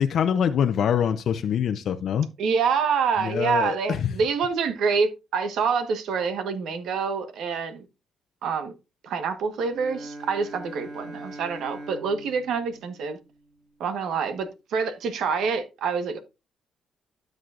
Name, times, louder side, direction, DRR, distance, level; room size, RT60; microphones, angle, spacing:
voice 1, 0.0-2.3 3.2-4.1, left 8 dB, 65° left, 0.6 m, -24 dB
voice 2, 2.4-7.8 8.4-8.7 9.0-13.2 13.8-16.2, right 5 dB, 75° right, 1.2 m, -26 dB
Bowed string instrument, 9.6-13.7, right 1 dB, 60° right, 1.7 m, -42 dB
12.5 x 6.3 x 2.5 m
cardioid pair, 90°, 0 cm